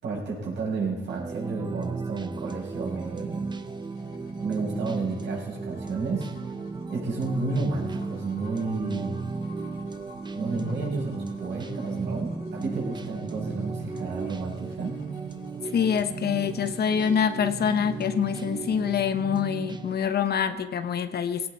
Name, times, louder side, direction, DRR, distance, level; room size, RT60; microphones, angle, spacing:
voice 1, 0.0-3.4 4.4-6.3 6.9-9.2 10.3-15.0, right 3 dB, 65° right, -2 dB, 6.4 m, -31 dB
sound 1, 1.1-20.0, right 4 dB, 20° right, 0.8 m, -35 dB
sound 2, 2.6-19.2, left 1 dB, 85° left, 2.8 m, -48 dB
voice 2, 15.7-21.5, left 7 dB, 55° left, 10 dB, 1.0 m, -25 dB
18.0 x 17.5 x 4.1 m, 1.1 s
cardioid pair, 90°, 20 cm